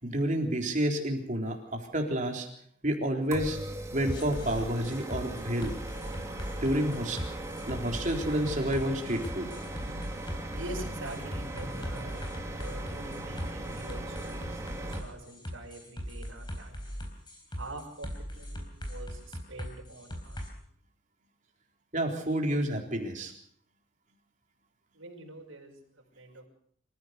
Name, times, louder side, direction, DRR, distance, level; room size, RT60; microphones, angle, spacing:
voice 1, 0.0-2.5 2.8-3.6 3.9-5.8 6.6-7.2 7.7-9.5 21.9-23.3, right 1 dB, 40° right, 2 dB, 3.8 m, -29 dB
sound 1, 3.3-15.0, right 1 dB, 15° right, 2.7 m, -39 dB
sound 2, 4.1-20.5, equal, 20° left, 4.1 m, -39 dB
voice 2, 10.5-12.3 12.6-17.0 17.6-18.1 18.4-20.4 24.9-26.5, right 2 dB, 75° right, 1 dB, 5.8 m, -45 dB
26.0 x 15.0 x 6.7 m, 0.64 s
head